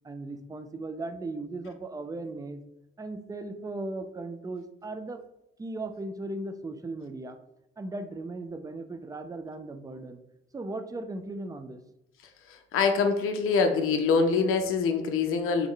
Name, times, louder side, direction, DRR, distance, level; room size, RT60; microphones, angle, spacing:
voice 1, 0.0-2.6 3.0-5.2 5.6-7.4 7.8-10.2 10.5-11.8, right 2 dB, 10° right, 8 dB, 0.4 m, -37 dB
voice 2, 12.5-15.7, left 5 dB, 45° left, 5 dB, 0.6 m, -25 dB
3.5 x 3.4 x 3.3 m, 0.83 s
figure-of-eight pair, 40°, 30 cm